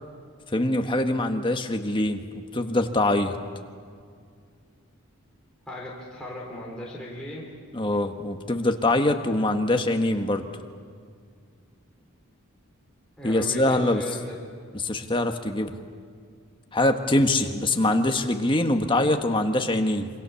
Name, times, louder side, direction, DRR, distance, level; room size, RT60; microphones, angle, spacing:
voice 1, 0.5-2.2 2.5-3.4 7.7-10.5 13.2-14.0 14.7-15.8 16.7-20.1, left 1 dB, 25° left, 5 dB, 1.5 m, -23 dB
voice 2, 5.7-7.5 13.2-14.4, left 1 dB, 5° left, -5 dB, 3.7 m, -37 dB
27.5 x 25.0 x 7.1 m, 2.1 s
head